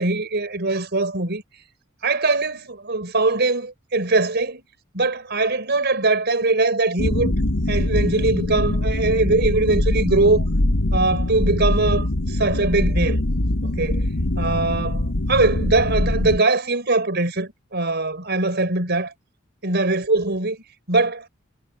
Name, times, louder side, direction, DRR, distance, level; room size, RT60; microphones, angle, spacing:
voice 1, 0.0-1.4 2.0-4.6 4.9-7.3 7.7-10.5 10.9-13.2 13.6-14.1 14.4-19.1 19.6-21.3, right 3 dB, 55° right, 5.2 m, -21 dB
sound 1, 7.0-16.4, left 1 dB, 85° left, 1.5 m, -22 dB
head